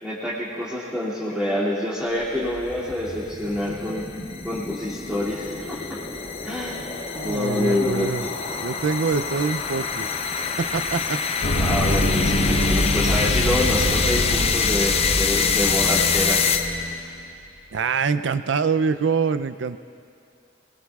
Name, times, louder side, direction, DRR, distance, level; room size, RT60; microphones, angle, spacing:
voice 1, 0.0-4.0 4.4-6.0 6.4-6.8 7.2-8.3 11.6-16.4, left 1 dB, 5° right, -9 dB, 2.5 m, -26 dB
sound 1, 2.2-17.0, left 6 dB, 35° left, 0.6 m, -26 dB
voice 2, 7.1-8.3 8.6-10.1 10.6-11.2 17.7-19.8, right 5 dB, 75° right, 12 dB, 0.5 m, -24 dB
sound 2, 11.4-16.9, left 1 dB, 70° left, 1.0 m, -24 dB
22.0 x 22.0 x 2.4 m, 2.5 s
head